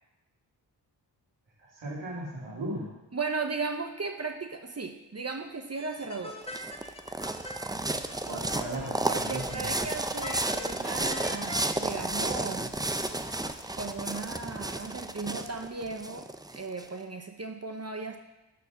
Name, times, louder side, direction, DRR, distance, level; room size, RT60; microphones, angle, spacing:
voice 1, 1.6-2.9 8.2-9.9, right 1 dB, 90° right, -5 dB, 2.6 m, -37 dB
voice 2, 3.1-6.4 9.1-12.7 13.8-16.3 16.5-18.2, right 4 dB, 35° right, 5 dB, 1.0 m, -36 dB
sound 1, 5.7-11.7, left 1 dB, 15° left, 1.1 m, -44 dB
sound 2, 6.0-16.8, right 2 dB, 10° right, 0.5 m, -32 dB
12.0 x 4.2 x 6.8 m, 1.0 s
cardioid pair, 60°, 44 cm